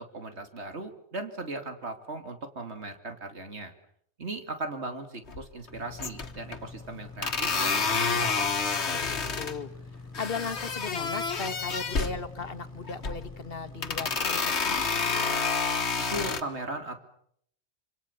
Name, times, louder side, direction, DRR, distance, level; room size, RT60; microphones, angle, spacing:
voice 1, 0.0-3.7 4.2-8.5 16.1-17.0, right 2 dB, 75° right, 6 dB, 2.9 m, -38 dB
sound 1, 5.3-5.7 6.0-6.6 7.2-9.6 10.1-12.2 12.9-13.3 13.8-16.4, left 4 dB, 80° left, 1.9 m, -29 dB
sound 2, 5.7-14.2, left 3 dB, 20° left, 6.1 m, -46 dB
voice 2, 8.9-9.7 10.2-14.9, left 4 dB, 55° left, 11 dB, 1.8 m, -37 dB
26.5 x 26.5 x 7.1 m, 0.67 s
omnidirectional pair, 1.1 m